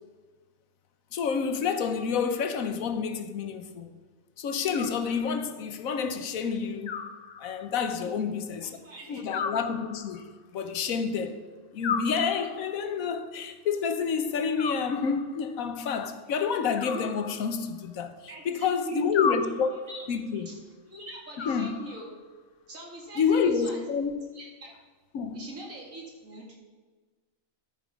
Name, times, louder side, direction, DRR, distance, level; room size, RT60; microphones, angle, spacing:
voice 1, 1.1-3.9 4.4-7.0 7.4-8.8 9.1-10.3 10.5-11.4 11.7-18.1 18.4-19.7 20.1-20.5 21.4-21.7 23.2-24.2 25.1-25.4, left 6 dB, 90° left, 1.3 m, -29 dB
Animal, 4.7-5.6 6.9-7.9 9.3-10.4 11.8-12.8 14.6-15.5 16.8-17.9 19.1-20.1 21.4-22.3, left 6 dB, 55° left, 0.4 m, -35 dB
voice 2, 8.6-9.3 18.3-19.2 19.9-20.0 20.3-20.6 20.9-22.1 22.7-23.8 24.3-24.7 25.3-26.6, right 2 dB, 75° right, 2.7 m, -42 dB
13.5 x 5.3 x 5.2 m
omnidirectional pair, 1.4 m